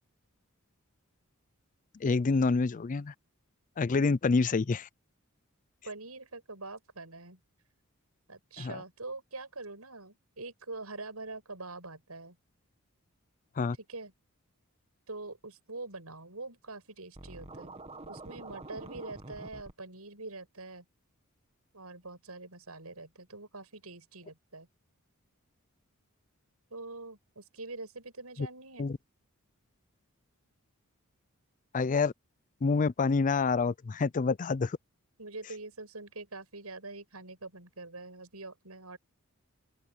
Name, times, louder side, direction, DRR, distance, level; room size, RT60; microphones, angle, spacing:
voice 1, 2.0-3.1 3.8-4.9 8.6-8.8 13.6-13.8 28.4-28.5 28.8-29.0 31.7-32.1 32.6-34.8, left 4 dB, 35° left, 0.4 m, -27 dB
voice 2, 5.8-7.4 8.3-12.4 13.9-14.1 15.1-17.7 18.1-20.8 21.7-24.7 26.7-28.9 35.2-39.0, right 3 dB, 85° right, 7.9 m, -44 dB
Scratching (performance technique), 17.1-19.7, right 2 dB, 30° right, 1.8 m, -46 dB
open air
head